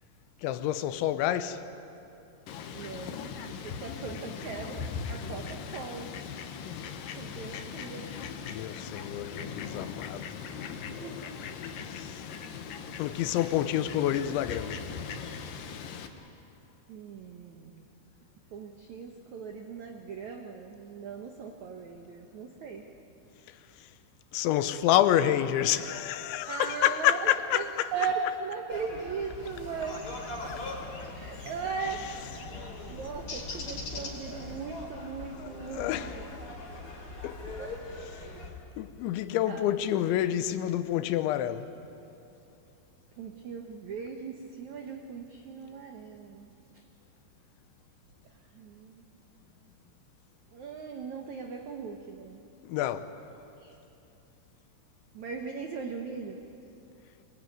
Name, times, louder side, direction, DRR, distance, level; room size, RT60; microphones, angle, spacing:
voice 1, 0.4-1.6 8.4-10.4 11.9-12.3 13.0-14.9 24.3-27.9 30.4-30.6 31.0-31.1 32.5-32.7 35.4-36.1 37.2-37.6 38.8-41.7 52.6-53.1, left 12 dB, 85° left, 3.2 m, -28 dB
Fowl, 2.5-16.1, left 6 dB, 70° left, 2.3 m, -39 dB
voice 2, 2.7-6.1 7.2-8.1 10.4-10.6 11.0-11.4 16.9-17.9 18.5-22.8 26.5-30.0 31.0-32.1 32.9-36.3 37.6-37.7 38.1-38.4 39.4-39.6 43.2-46.8 48.2-49.0 50.5-52.4 53.6-53.8 55.1-56.4, right 5 dB, 85° right, 1.6 m, -38 dB
sound 1, 28.7-38.5, left 2 dB, 25° left, 3.1 m, -42 dB
sound 2, 29.4-34.6, left 3 dB, 40° left, 5.2 m, -44 dB
24.5 x 21.0 x 9.4 m
omnidirectional pair, 5.3 m